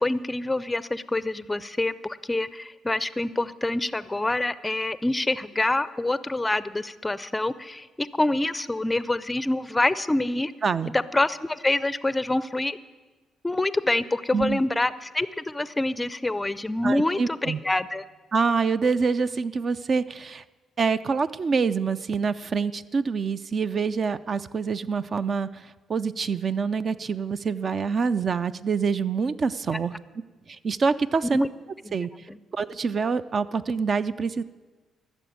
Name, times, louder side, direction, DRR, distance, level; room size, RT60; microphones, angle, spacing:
voice 1, 0.0-10.5 10.9-12.8 13.4-18.0 31.3-31.5 31.8-31.9 32.3-32.4, left 2 dB, 15° left, 16 dB, 0.5 m, -26 dB
voice 2, 16.8-17.6 18.3-20.4 20.8-29.9 30.5-31.5 31.9-32.1 32.5-34.4, right 5 dB, 45° right, 13 dB, 0.4 m, -26 dB
14.0 x 7.0 x 9.3 m, 1.3 s
cardioid pair, 90°, 0 cm